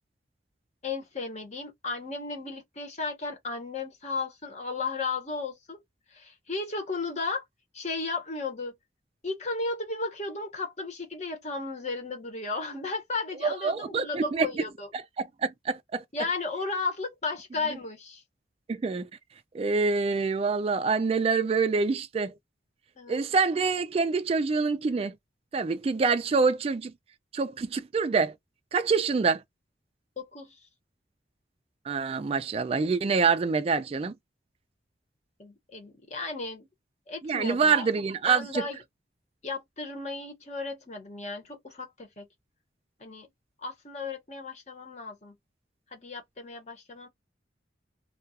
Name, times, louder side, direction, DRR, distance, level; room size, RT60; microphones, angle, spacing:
voice 1, 0.8-5.8 6.1-7.4 7.7-8.8 9.2-14.9 16.1-18.2 23.0-23.2 30.2-30.6 35.4-36.7 37.1-37.9 38.2-38.8 39.4-42.2 43.0-43.3 43.6-45.3 45.9-47.1, left 3 dB, 40° left, 1.0 m, -34 dB
voice 2, 13.4-14.5 15.2-16.0 18.7-19.1 19.5-22.3 23.1-25.1 25.5-26.9 27.3-28.3 28.7-29.4 31.9-34.1 37.2-38.7, right 4 dB, 35° right, 0.3 m, -26 dB
2.3 x 2.3 x 2.7 m
head